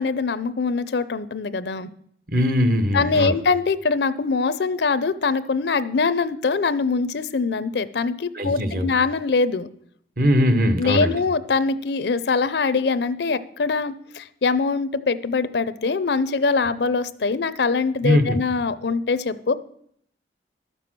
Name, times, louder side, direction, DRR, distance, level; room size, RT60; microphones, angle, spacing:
voice 1, 0.0-1.9 2.9-9.7 10.8-19.5, left 4 dB, 70° left, 14 dB, 0.5 m, -23 dB
voice 2, 2.3-3.3 8.3-8.9 10.2-11.2 18.0-18.4, equal, 50° right, 9 dB, 1.0 m, -20 dB
12.0 x 6.9 x 6.0 m, 0.68 s
head